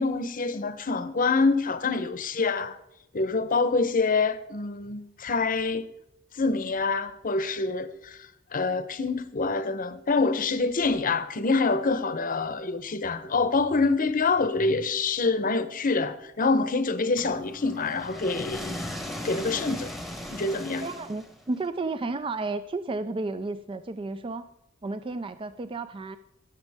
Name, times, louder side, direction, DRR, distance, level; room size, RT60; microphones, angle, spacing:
voice 1, 0.0-2.8 3.1-5.9 6.3-18.9 19.2-19.9 20.3-20.9, left 3 dB, 45° left, 0.8 m, -26 dB
sound 1, 17.2-21.6, left 1 dB, ahead, 1.1 m, -37 dB
voice 2, 20.8-24.5 24.8-26.2, right 3 dB, 25° right, 0.4 m, -32 dB
18.0 x 7.0 x 3.5 m
head